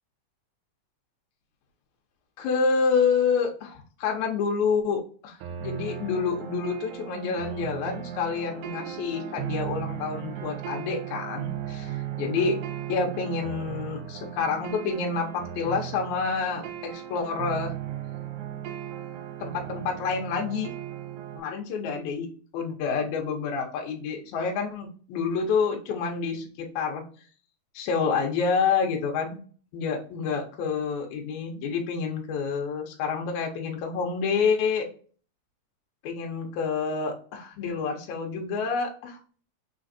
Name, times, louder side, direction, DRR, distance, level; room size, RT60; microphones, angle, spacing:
voice 1, 2.4-12.6 12.9-17.7 19.4-20.7 21.3-22.3 22.5-27.0 27.7-29.4 29.7-34.9 36.0-39.2, left 5 dB, 70° left, 2 dB, 2.0 m, -28 dB
sound 1, 5.4-21.4, right 10 dB, 80° right, 2.0 m, -36 dB
5.1 x 3.8 x 2.6 m, 0.41 s
omnidirectional pair, 4.0 m